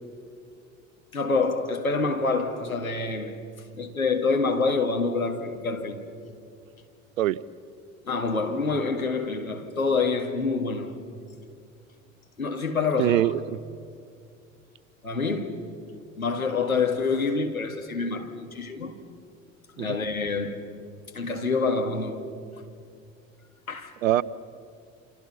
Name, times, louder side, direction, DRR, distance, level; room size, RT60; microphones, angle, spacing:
voice 1, 1.1-3.4 3.7-6.0 8.1-11.0 12.4-13.3 15.0-15.7 16.2-19.0 19.8-20.6 21.1-22.3 23.7-23.9, left 4 dB, 90° left, 2.1 m, -27 dB
voice 2, 13.0-13.6 19.8-20.0 24.0-24.2, right 14 dB, 70° right, 0.7 m, -23 dB
28.5 x 28.0 x 5.6 m
figure-of-eight pair, 70°, 41 cm